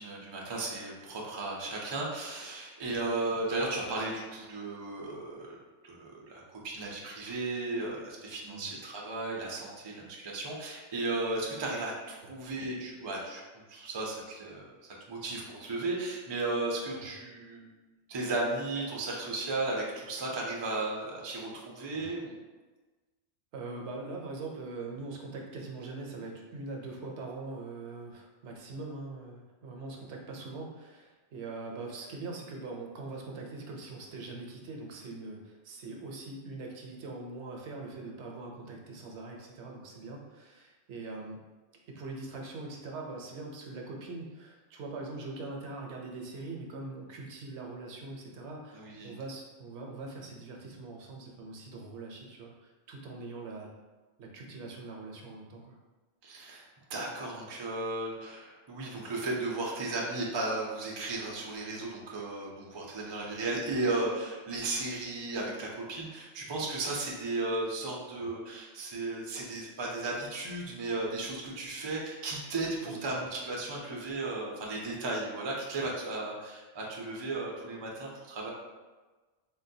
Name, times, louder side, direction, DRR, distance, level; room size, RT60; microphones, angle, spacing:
voice 1, 0.0-5.6 5.8-13.4 13.7-14.6 15.1-17.7 18.1-22.4 48.7-49.2 56.2-78.5, right 2 dB, 45° right, -2 dB, 0.3 m, -35 dB
voice 2, 23.5-41.4 41.9-53.7 54.2-55.8 58.9-59.0 68.2-68.3 72.8-73.0, right 3 dB, 70° right, 0 dB, 0.9 m, -42 dB
3.7 x 2.2 x 2.6 m, 1.3 s
omnidirectional pair, 1.2 m